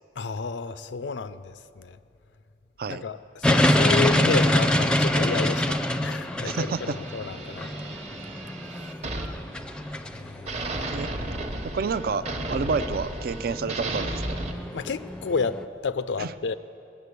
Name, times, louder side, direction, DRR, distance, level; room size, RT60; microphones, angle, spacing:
voice 1, 0.2-2.0 2.9-7.7 10.1-10.8 14.7-16.5, left 4 dB, 90° left, 13 dB, 0.5 m, -31 dB
sound 1, 3.4-15.6, left 1 dB, 5° left, 0.5 m, -26 dB
voice 2, 6.4-7.0 10.7-11.1 11.4-14.4 16.2-16.3, right 5 dB, 55° right, 13 dB, 0.4 m, -30 dB
sound 2, 6.5-10.1 10.5-14.5, right 2 dB, 40° right, 1.0 m, -34 dB
20.0 x 6.8 x 8.2 m, 2.6 s
head